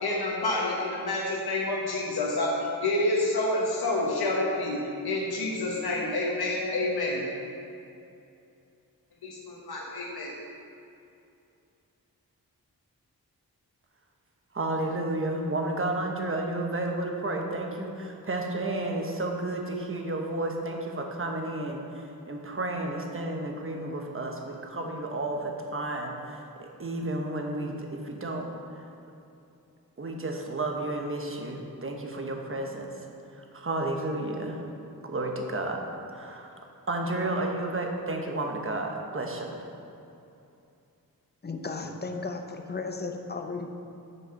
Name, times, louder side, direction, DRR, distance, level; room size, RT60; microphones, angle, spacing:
voice 1, 0.0-7.2 9.2-10.3, left 2 dB, 90° left, -3 dB, 1.1 m, -28 dB
voice 2, 14.5-28.5 30.0-32.9 33.5-34.6 35.0-35.8 36.1-36.5 36.9-39.5, right 2 dB, 35° right, 2 dB, 1.1 m, -32 dB
voice 3, 41.4-43.7, left 3 dB, 25° left, 5 dB, 0.7 m, -35 dB
6.6 x 4.8 x 6.9 m, 2.7 s
wide cardioid pair, 70°, 37 cm